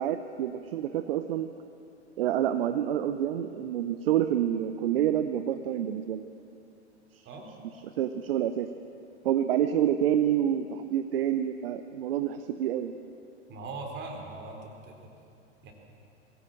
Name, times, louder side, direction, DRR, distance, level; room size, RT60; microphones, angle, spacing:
voice 1, 0.0-1.5 2.2-6.3 7.1-7.2 8.0-8.7 9.2-12.9, right 10 dB, 55° right, 10 dB, 0.9 m, -28 dB
voice 2, 13.5-14.9 15.6-15.7, right 3 dB, 30° right, 2 dB, 3.9 m, -40 dB
21.0 x 17.0 x 7.7 m, 2.6 s
figure-of-eight pair, 95°, 34 cm